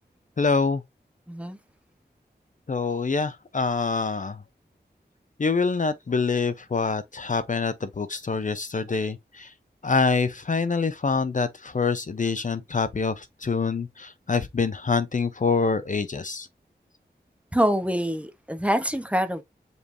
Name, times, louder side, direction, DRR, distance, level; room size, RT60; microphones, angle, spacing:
voice 1, 0.4-0.8 2.7-4.4 5.4-9.5 9.8-16.5, left 4 dB, 45° left, 0.6 m, -25 dB
voice 2, 1.3-1.6 17.5-19.4, equal, 5° right, 0.8 m, -25 dB
5.2 x 3.2 x 2.5 m
cardioid pair, 45°, 18 cm